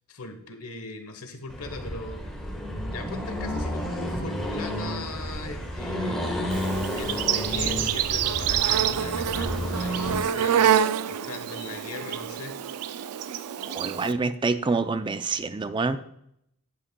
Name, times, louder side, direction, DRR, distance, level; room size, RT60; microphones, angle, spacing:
voice 1, 0.1-2.2 2.9-12.5, left 3 dB, 85° left, 7 dB, 1.1 m, -39 dB
Accelerating revving vroom, 1.5-10.2, equal, ahead, 1.4 m, -31 dB
Insect, 6.5-14.1, right 9 dB, 90° right, 0.4 m, -27 dB
voice 2, 13.7-16.0, right 3 dB, 20° right, 11 dB, 0.4 m, -26 dB
9.8 x 8.3 x 2.3 m, 0.74 s
head